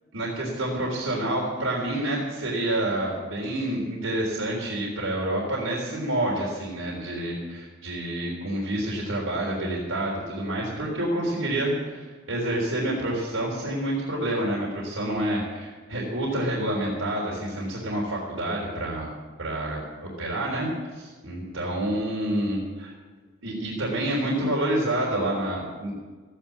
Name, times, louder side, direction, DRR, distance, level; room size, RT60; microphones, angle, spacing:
voice 1, 0.1-19.1 19.4-20.7 20.9-22.9 23.4-25.9, right 1 dB, 80° right, -3 dB, 3.7 m, -28 dB
15.5 x 10.0 x 7.4 m, 1.4 s
head